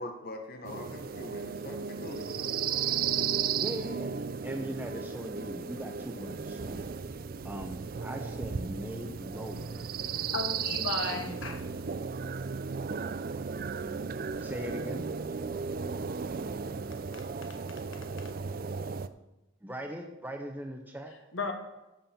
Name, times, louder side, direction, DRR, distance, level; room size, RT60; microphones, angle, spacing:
voice 1, 0.0-2.5, left 1 dB, 45° left, 4 dB, 1.0 m, -42 dB
sound 1, 0.6-19.1, right 6 dB, 45° right, 0.4 m, -35 dB
voice 2, 3.6-4.2 4.4-6.8 7.4-9.9 10.6-10.8 11.1-11.6 11.9-12.1 14.4-15.1 19.6-21.1, equal, 10° right, 3 dB, 0.8 m, -40 dB
voice 3, 10.3-11.6 17.1-17.6 18.2-18.3 21.3-21.5, left 3 dB, 60° left, 5 dB, 1.5 m, -35 dB
16.0 x 7.5 x 4.4 m, 1.0 s
head